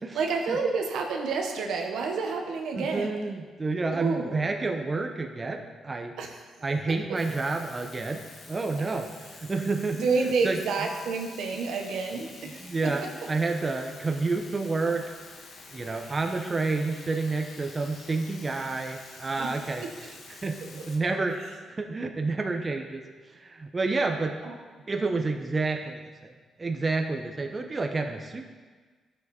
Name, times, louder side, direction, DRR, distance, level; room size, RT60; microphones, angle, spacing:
voice 1, 0.1-3.1 3.9-4.3 6.2-6.4 7.1-7.2 9.9-12.6 19.4-19.5 24.4-24.5, right 4 dB, 85° right, 2 dB, 1.1 m, -29 dB
voice 2, 2.7-6.1 6.6-9.1 9.4-10.6 12.6-15.0 15.7-23.0 23.4-24.3 24.9-26.3 26.6-28.5, right 3 dB, 30° right, 4 dB, 0.8 m, -29 dB
sound 1, 7.1-21.0, left 3 dB, 70° left, 1.5 m, -48 dB
10.5 x 6.8 x 4.3 m, 1.5 s
cardioid pair, 95°, 0 cm